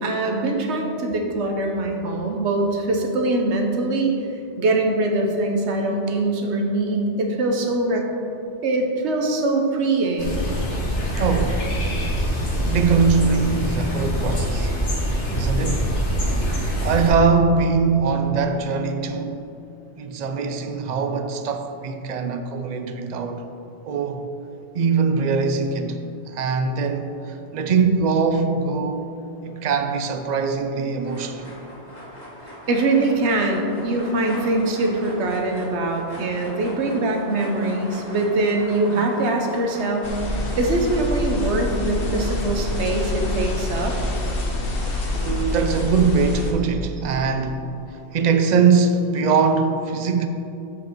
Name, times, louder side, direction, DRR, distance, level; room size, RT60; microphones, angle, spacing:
voice 1, 0.0-4.1 4.6-8.1 8.6-10.4 32.7-40.1 40.5-43.9, right 2 dB, 75° right, 1.1 m, -23 dB
sound 1, 10.2-17.1, equal, 85° left, 1.8 m, -24 dB
voice 2, 11.2-11.8 12.7-14.7 15.3-16.0 16.8-19.5 20.0-23.5 23.8-24.3 24.7-26.0 26.3-29.1 29.4-31.6 39.0-39.1 44.8-50.3, right 5 dB, 60° right, 0.5 m, -22 dB
sound 2, 31.0-45.4, equal, 40° left, 2.0 m, -40 dB
microphone static, 40.0-46.5, left 2 dB, 55° left, 1.1 m, -26 dB
7.2 x 5.2 x 4.5 m
omnidirectional pair, 1.2 m